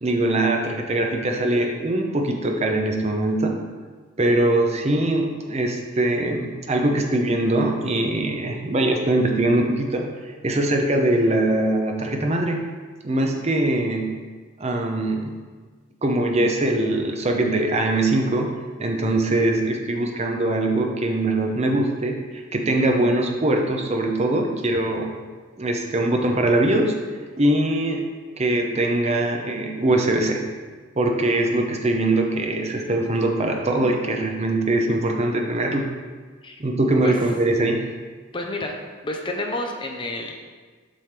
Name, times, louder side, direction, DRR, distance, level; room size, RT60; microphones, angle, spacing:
voice 1, 0.0-3.6 4.2-12.6 13.0-14.1 14.6-15.3 16.0-18.5 18.8-25.1 25.6-26.9 27.4-28.0 28.4-30.4 31.0-35.9 36.6-37.8, right 1 dB, 30° right, 2 dB, 0.7 m, -22 dB
voice 2, 38.3-38.7 39.0-40.4, left 2 dB, 25° left, 2 dB, 0.5 m, -29 dB
7.6 x 3.4 x 5.8 m, 1.5 s
head